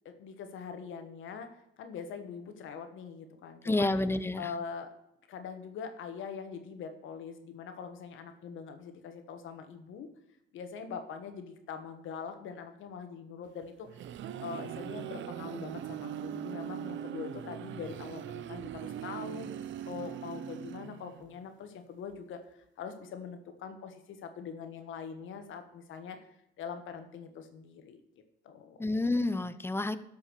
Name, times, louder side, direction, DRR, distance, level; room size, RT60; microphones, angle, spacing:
voice 1, 0.0-3.9 4.4-4.9 5.3-10.1 10.5-13.9 14.4-19.5 19.8-26.2 26.6-28.0 28.4-28.8, left 6 dB, 80° left, 7 dB, 1.5 m, -43 dB
voice 2, 3.6-4.5 28.8-30.0, left 2 dB, 10° left, 13 dB, 0.7 m, -29 dB
sound 1, 13.6-21.3, right 10 dB, 70° right, 0.6 m, -40 dB
12.0 x 5.6 x 6.9 m, 0.81 s
cardioid pair, 90°, 20 cm